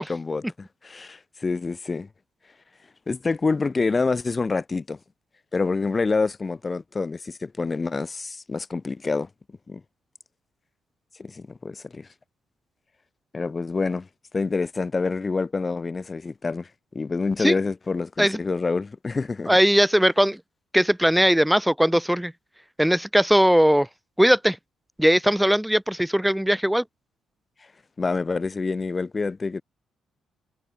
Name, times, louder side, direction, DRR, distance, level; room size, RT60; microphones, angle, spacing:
voice 1, 0.0-2.1 3.1-5.0 5.5-9.3 9.7-9.8 11.2-12.1 13.3-14.1 14.3-19.5 28.0-29.6, left 4 dB, 30° left, 0.3 m, -27 dB
voice 2, 19.5-20.4 20.7-22.3 22.8-23.9 24.2-24.6 25.0-26.8, equal, 5° right, 0.8 m, -19 dB
cardioid pair, 90°, 0 cm